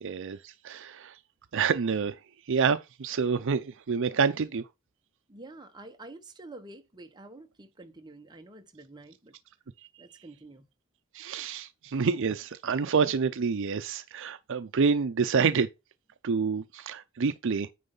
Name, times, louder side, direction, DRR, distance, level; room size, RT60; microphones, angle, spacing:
voice 1, 0.0-1.2 1.5-2.2 2.5-4.7 11.1-15.7 16.2-17.7, right 5 dB, 60° right, 0.5 m, -28 dB
voice 2, 5.3-9.4 10.0-10.6, right 2 dB, 20° right, 1.0 m, -48 dB
9.4 x 3.2 x 5.4 m
head